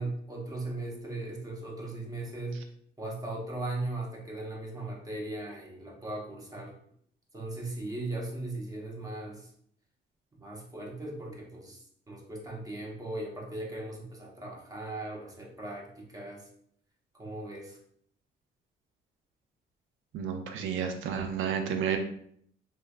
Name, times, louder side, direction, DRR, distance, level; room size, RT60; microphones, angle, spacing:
voice 1, 0.0-2.6 3.0-6.8 7.3-9.5 10.4-16.5 17.2-17.8, right 2 dB, 20° right, -2 dB, 0.8 m, -38 dB
voice 2, 20.1-22.0, right 7 dB, 80° right, 6 dB, 0.4 m, -31 dB
3.1 x 2.2 x 2.3 m, 0.65 s
cardioid pair, 90°, 20 cm